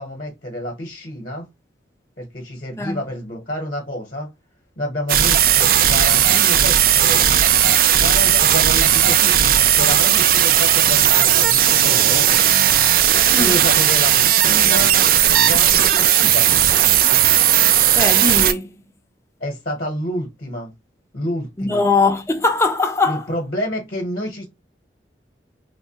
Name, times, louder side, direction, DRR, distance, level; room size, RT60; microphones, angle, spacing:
voice 1, 0.0-1.5 2.2-4.3 4.8-7.3 8.0-12.3 13.4-14.9 15.4-16.5 19.4-20.7 21.1-21.9 23.1-24.5, equal, 50° left, 0.9 m, -29 dB
sound 1, 5.1-18.5, right 10 dB, 50° right, 0.3 m, -15 dB
voice 2, 18.0-18.8 21.6-23.2, left 3 dB, 15° left, 0.4 m, -20 dB
3.2 x 2.1 x 2.7 m
head